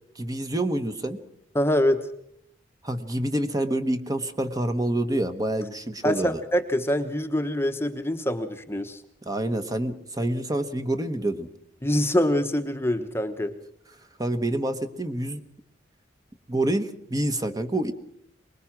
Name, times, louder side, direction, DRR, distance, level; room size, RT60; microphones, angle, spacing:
voice 1, 0.1-1.2 2.8-6.4 9.3-11.5 14.2-15.4 16.5-17.9, right 1 dB, 20° right, 8 dB, 1.1 m, -27 dB
voice 2, 1.5-2.0 6.0-9.0 11.8-13.5, left 1 dB, 15° left, 7 dB, 1.0 m, -24 dB
24.0 x 21.0 x 6.0 m, 0.72 s
head